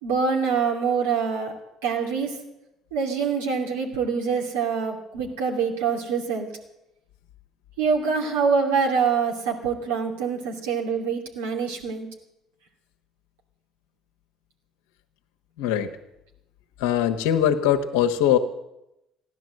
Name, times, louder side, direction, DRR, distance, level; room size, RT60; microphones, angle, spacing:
voice 1, 0.0-1.5 1.8-2.4 2.9-6.5 7.8-12.1, right 5 dB, 90° right, 0 dB, 2.7 m, -25 dB
voice 2, 15.6-15.9 16.8-18.4, left 10 dB, 85° left, 6 dB, 1.2 m, -21 dB
15.5 x 11.5 x 7.7 m, 0.88 s
hypercardioid pair, 65°, 0 cm